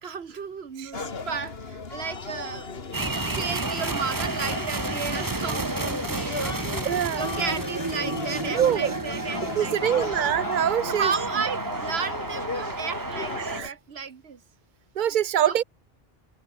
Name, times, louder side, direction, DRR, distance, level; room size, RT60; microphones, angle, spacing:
voice 1, 0.0-2.8 3.2-6.8 7.1-10.2 10.9-14.4 15.4-15.6, right 6 dB, 85° right, 1.5 m, -33 dB
sound 1, 0.9-13.7, left 4 dB, 75° left, 2.0 m, -36 dB
sound 2, 2.9-13.6, right 3 dB, 20° right, 0.9 m, -31 dB
voice 2, 6.8-7.2 8.5-9.0 9.6-11.1 13.5-13.7 15.0-15.6, right 10 dB, 60° right, 0.6 m, -24 dB
omnidirectional pair, 1.0 m